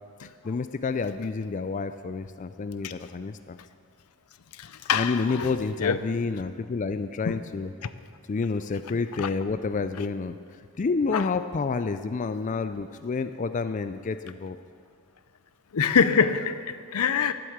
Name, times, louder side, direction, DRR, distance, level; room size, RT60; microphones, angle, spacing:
voice 1, 0.2-3.6 4.9-7.7 8.3-10.3 10.8-14.6, left 4 dB, 35° left, 10 dB, 0.4 m, -29 dB
voice 2, 4.6-5.5 5.8-6.0 7.2-7.4 9.2-9.3 11.1-11.3 15.7-17.3, left 6 dB, 80° left, 13 dB, 0.6 m, -24 dB
12.5 x 7.8 x 8.0 m, 2.3 s
head